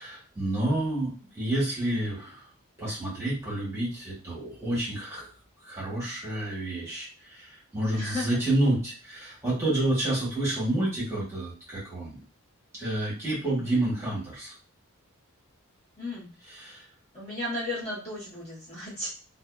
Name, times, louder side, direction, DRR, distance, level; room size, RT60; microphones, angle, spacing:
voice 1, 0.0-2.4 2.8-5.3 5.6-12.2 12.7-14.5 16.4-16.8, right 1 dB, 15° right, -8 dB, 1.3 m, -29 dB
voice 2, 7.9-8.3 13.4-13.8 16.0-16.3 17.1-19.1, left 1 dB, 30° left, -8 dB, 1.1 m, -34 dB
2.6 x 2.4 x 2.3 m, 0.35 s
head